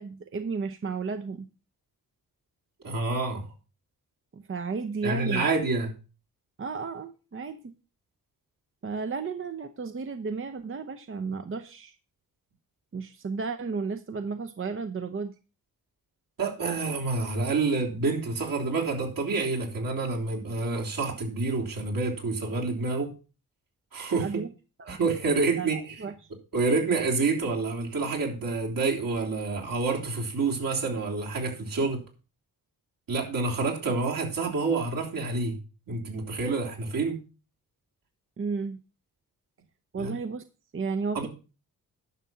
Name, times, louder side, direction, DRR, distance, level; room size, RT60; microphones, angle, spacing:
voice 1, 0.0-1.5 4.3-5.5 6.6-7.7 8.8-12.0 12.9-15.3 24.2-24.5 24.8-25.0 25.6-26.1 38.4-38.8 39.9-40.4 40.7-41.3, right 4 dB, 35° right, 7 dB, 0.7 m, -33 dB
voice 2, 2.8-3.5 5.0-5.9 16.4-23.1 23.9-24.3 24.9-26.0 26.5-32.0 33.1-35.6 35.9-37.2 40.0-40.1 41.2-41.3, right 3 dB, 65° right, -1 dB, 3.4 m, -28 dB
11.0 x 6.2 x 5.7 m, 0.33 s
cardioid pair, 75°, 36 cm